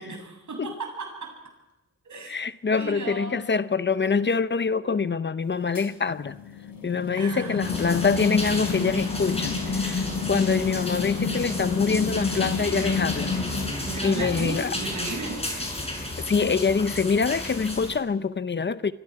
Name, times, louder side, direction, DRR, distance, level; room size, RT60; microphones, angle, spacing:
voice 1, 0.0-1.4 2.0-2.3 2.8-3.4 7.2-7.6 13.8-15.5, right 3 dB, 85° right, 7.9 m, -35 dB
voice 2, 2.3-6.4 6.8-13.3 14.0-14.7 16.2-18.9, left 5 dB, 40° left, 0.7 m, -25 dB
sound 1, 5.7-13.7, left 5 dB, 85° left, 5.0 m, -30 dB
sound 2, 7.6-18.0, left 1 dB, 20° left, 5.9 m, -33 dB
28.0 x 25.0 x 4.8 m
wide cardioid pair, 135°, 29 cm